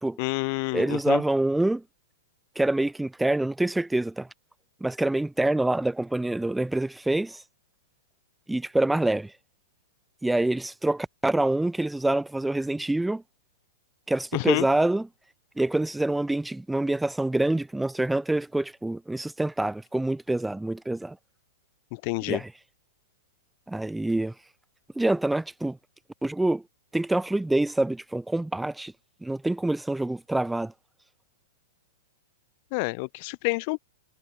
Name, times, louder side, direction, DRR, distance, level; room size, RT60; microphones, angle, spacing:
voice 1, 0.2-1.2 14.3-14.7 21.9-22.4 32.7-33.8, left 31 dB, 45° left, 4.1 m, -28 dB
voice 2, 0.7-1.8 2.6-4.3 4.8-7.4 8.5-9.3 10.2-13.2 14.1-15.1 15.6-21.2 22.3-22.5 23.7-24.3 25.0-25.8 26.2-26.6 26.9-28.9 29.2-30.7, right 2 dB, 5° right, 3.5 m, -26 dB
hypercardioid pair, 125°, 0 cm